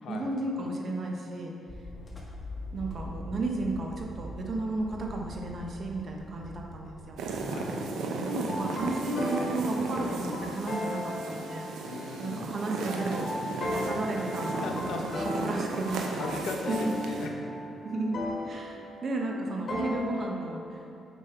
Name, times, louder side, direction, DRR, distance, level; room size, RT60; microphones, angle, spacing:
voice 1, 0.1-1.5 2.7-7.2 8.2-11.7 12.2-14.9 15.1-16.4 16.7-16.9 17.8-18.2 18.4-20.8, right 2 dB, 50° right, 0 dB, 1.1 m, -33 dB
sound 1, 1.7-7.1, left 1 dB, 15° left, 1.7 m, -42 dB
sound 2, 7.2-17.3, right 3 dB, 85° right, 0.7 m, -36 dB
sound 3, 8.5-20.3, left 1 dB, 45° left, 1.8 m, -37 dB
voice 2, 11.8-12.5 14.2-14.3 14.6-15.5 15.8-17.3, left 3 dB, 75° left, 1 dB, 1.0 m, -38 dB
7.7 x 5.2 x 4.5 m, 2.9 s
cardioid pair, 85°, 0 cm